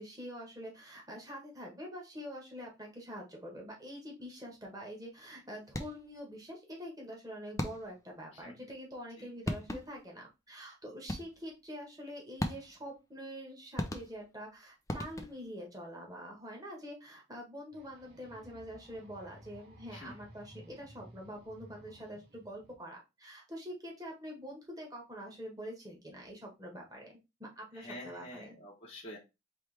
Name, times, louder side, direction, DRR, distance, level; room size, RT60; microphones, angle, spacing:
voice 1, 0.0-28.6, equal, 20° right, -1 dB, 1.4 m, -45 dB
sound 1, 5.7-6.2 7.6-8.1 9.1-9.2 9.5-10.1 11.1-11.5 12.4-12.9 13.8-14.4 14.9-15.6, left 1 dB, 15° left, 0.5 m, -38 dB
sound 2, 17.7-22.7, right 1 dB, 85° right, 1.9 m, -56 dB
voice 2, 27.7-29.2, left 1 dB, 30° left, -4 dB, 0.9 m, -47 dB
4.5 x 3.2 x 3.3 m, 0.25 s
head